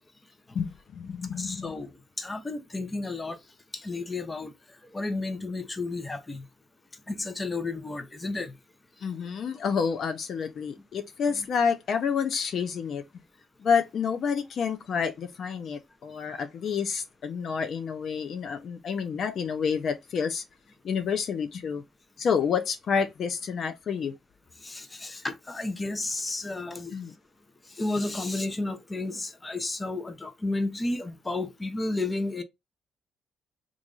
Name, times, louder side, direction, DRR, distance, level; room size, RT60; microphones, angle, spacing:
voice 1, 0.5-1.7 9.0-13.0 13.6-20.4 20.8-21.8 22.2-24.1 26.9-27.1, left 6 dB, 60° left, 0.5 m, -29 dB
voice 2, 1.4-1.9 2.2-3.4 3.8-4.5 4.9-6.4 7.1-8.5 11.4-11.5 24.6-26.9 27.8-32.4, left 2 dB, 20° left, 0.7 m, -32 dB
3.0 x 2.5 x 3.7 m
cardioid pair, 95°, 0 cm